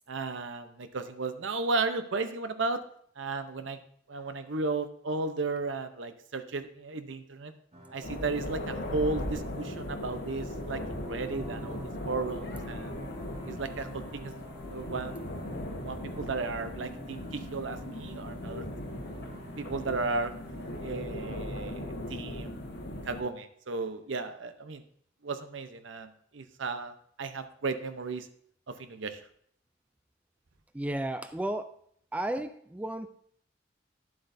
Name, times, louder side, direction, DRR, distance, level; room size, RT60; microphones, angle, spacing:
voice 1, 0.1-2.8 3.2-3.8 4.1-7.5 7.9-12.9 13.5-14.3 14.7-15.2 15.8-18.7 19.6-20.3 20.8-24.8 25.2-28.3 28.7-29.2, right 3 dB, 70° right, 10 dB, 0.7 m, -34 dB
sound 1, 7.7-20.8, right 1 dB, 35° right, 1.4 m, -49 dB
sound 2, 8.0-23.2, left 1 dB, 60° left, 1.2 m, -38 dB
voice 2, 30.7-31.7 32.1-33.1, right 1 dB, 5° right, 9 dB, 0.3 m, -33 dB
11.0 x 7.7 x 2.7 m, 0.63 s
head